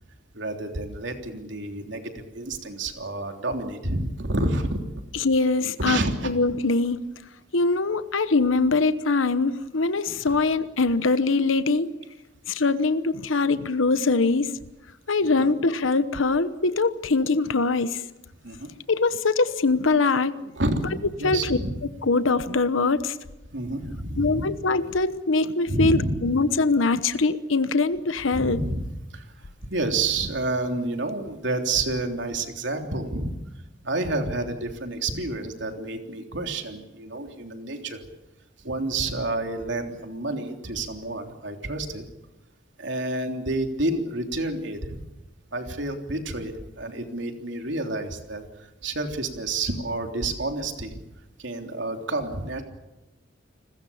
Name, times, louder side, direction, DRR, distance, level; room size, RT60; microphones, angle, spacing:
voice 1, 0.3-4.8 5.8-6.3 10.3-10.4 15.2-15.5 18.4-18.7 20.6-20.8 21.2-21.8 23.5-24.5 25.7-26.2 28.3-28.9 29.1-33.3 33.8-38.0 38.6-42.0 42.8-45.0 45.5-51.0 51.4-52.6, right 2 dB, 70° right, 4 dB, 3.4 m, -29 dB
voice 2, 5.1-7.0 7.5-12.0 12.5-14.5 15.1-18.0 18.9-20.5 21.2-21.6 22.0-23.2 24.2-28.6, left 3 dB, 90° left, 13 dB, 1.0 m, -23 dB
30.0 x 21.0 x 7.2 m, 0.98 s
head